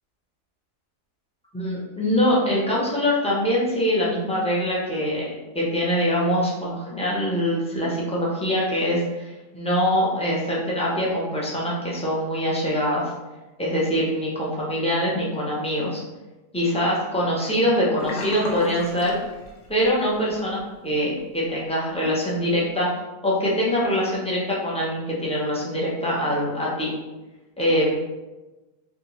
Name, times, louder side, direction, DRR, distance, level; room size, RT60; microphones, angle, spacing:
voice 1, 1.5-13.1 13.6-16.0 16.5-19.2 19.7-22.9 23.2-26.9 27.6-28.0, equal, 5° left, -6 dB, 0.4 m, -24 dB
Sink (filling or washing), 18.0-20.0 20.3-20.6 21.0-21.1, left 3 dB, 75° left, 1.2 m, -33 dB
3.4 x 3.3 x 3.0 m, 1.1 s
omnidirectional pair, 1.7 m